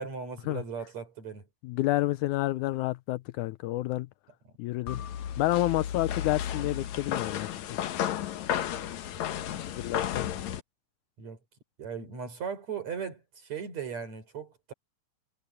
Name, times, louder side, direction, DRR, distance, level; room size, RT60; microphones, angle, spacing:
voice 1, 0.0-1.5 4.4-4.5 9.5-9.6 11.2-11.4 11.8-14.7, right 6 dB, 50° right, 5.7 m, -38 dB
voice 2, 1.6-4.1 4.6-5.0 5.4-7.5 9.8-10.3, left 17 dB, 90° left, 1.7 m, -29 dB
sound 1, 4.9-10.6, left 10 dB, 65° left, 2.1 m, -33 dB
omnidirectional pair, 4.2 m